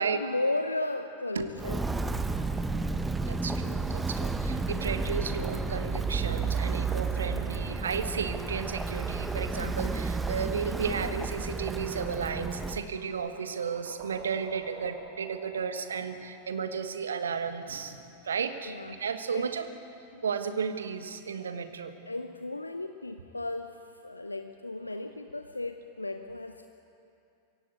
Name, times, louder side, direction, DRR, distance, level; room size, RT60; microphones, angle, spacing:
voice 1, 0.0-1.8 7.5-7.6 18.6-19.5 20.1-20.2 22.1-26.7, left 2 dB, 85° left, 8 dB, 0.7 m, -35 dB
Walk footsteps, 1.6-12.8, right 4 dB, 10° right, 1.0 m, -31 dB
voice 2, 3.3-19.7 20.2-21.9, right 6 dB, 70° right, 9 dB, 1.5 m, -33 dB
sound 1, 12.9-17.9, right 8 dB, 50° right, 1.7 m, -50 dB
24.0 x 16.5 x 8.2 m, 2.6 s
figure-of-eight pair, 90°, 0 cm